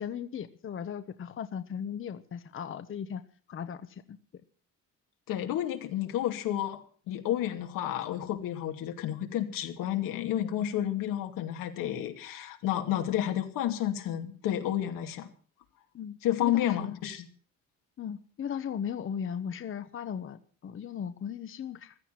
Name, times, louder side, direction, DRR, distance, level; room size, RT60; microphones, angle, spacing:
voice 1, 0.0-3.2 3.5-4.2 7.3-7.4 15.9-17.0 18.0-21.9, left 8 dB, 40° left, 11 dB, 1.0 m, -37 dB
voice 2, 5.3-6.8 7.1-15.3 16.2-17.3, left 12 dB, 90° left, 5 dB, 2.6 m, -31 dB
16.0 x 13.5 x 5.9 m, 0.43 s
cardioid pair, 130°, 32 cm